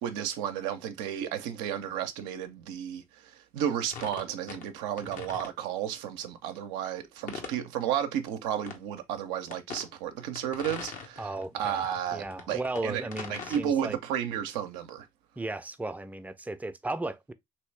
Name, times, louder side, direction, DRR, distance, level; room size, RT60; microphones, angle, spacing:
voice 1, 0.0-11.3 11.5-13.0 13.3-15.1, right 9 dB, 80° right, 0.5 m, -33 dB
sound 1, 3.9-4.7 5.0-5.5 7.3-7.6 8.7-8.8 9.5-9.9 10.4-11.5 11.8-13.6, left 5 dB, 60° left, 0.9 m, -41 dB
voice 2, 11.2-11.9 12.1-14.0 15.4-17.3, right 2 dB, 10° right, 0.5 m, -35 dB
3.1 x 2.8 x 3.1 m
hypercardioid pair, 50°, 15 cm